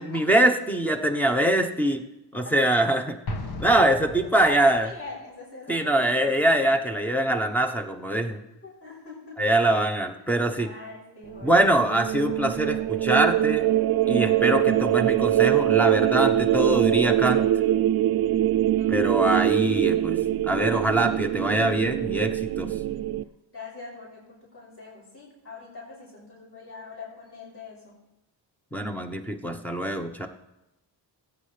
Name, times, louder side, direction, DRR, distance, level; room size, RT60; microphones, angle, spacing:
voice 1, 0.0-2.0 2.3-3.2 3.6-4.9 5.7-8.4 9.4-10.7 11.4-13.7 14.1-17.4 18.9-20.2 20.5-22.7 28.7-30.3, right 1 dB, 5° left, 5 dB, 0.9 m, -23 dB
Explosion, 3.3-5.0, left 2 dB, 55° left, 1.7 m, -36 dB
voice 2, 4.3-7.4 8.6-9.4 10.6-11.7 16.5-17.0 18.8-19.2 23.5-27.9 29.0-29.3, left 3 dB, 30° left, -5 dB, 5.8 m, -41 dB
sound 1, 11.3-23.2, right 12 dB, 55° right, 0.5 m, -23 dB
20.5 x 9.2 x 3.3 m, 0.94 s
cardioid pair, 125°, 44 cm